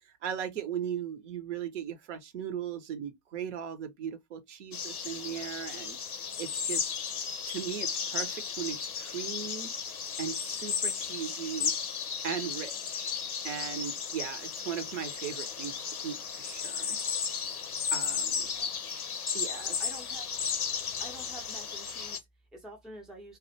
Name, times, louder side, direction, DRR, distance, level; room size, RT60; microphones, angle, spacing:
voice 1, 0.2-6.0 6.4-6.9 7.5-9.7 10.2-11.8 12.2-13.1 13.4-17.0 17.9-18.5 19.3-19.8, right 8 dB, 55° right, 0.6 m, -38 dB
sound 1, 4.7-22.2, left 6 dB, 85° left, 0.6 m, -34 dB
voice 2, 18.4-19.3 19.6-20.2 21.0-23.4, right 1 dB, ahead, 0.5 m, -49 dB
2.3 x 2.1 x 2.6 m
figure-of-eight pair, 80°, 43 cm